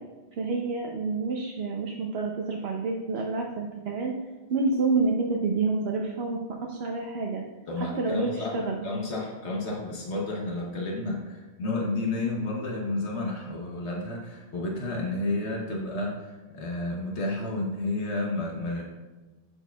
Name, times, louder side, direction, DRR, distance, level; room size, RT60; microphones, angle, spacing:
voice 1, 0.4-4.1 4.5-7.4 7.8-8.8, right 3 dB, 70° right, 0 dB, 0.9 m, -28 dB
voice 2, 7.7-18.8, left 2 dB, 85° left, -1 dB, 1.3 m, -31 dB
12.0 x 4.5 x 2.3 m, 1.2 s
omnidirectional pair, 1.1 m